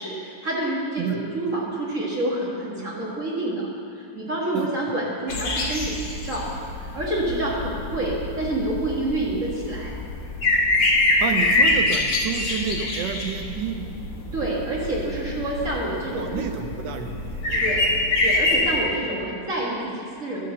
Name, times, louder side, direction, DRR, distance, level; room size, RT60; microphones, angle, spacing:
voice 1, 0.0-3.7 4.0-6.5 6.8-9.9 14.3-16.4 17.6-17.9 18.2-20.4, right 1 dB, 45° right, -5 dB, 2.3 m, -28 dB
sound 1, 5.3-18.8, left 2 dB, 80° left, 2.2 m, -25 dB
voice 2, 11.2-13.9 16.1-17.6 18.8-19.0, right 6 dB, 75° right, 6 dB, 1.4 m, -30 dB
12.5 x 6.7 x 6.6 m, 2.4 s
omnidirectional pair, 2.0 m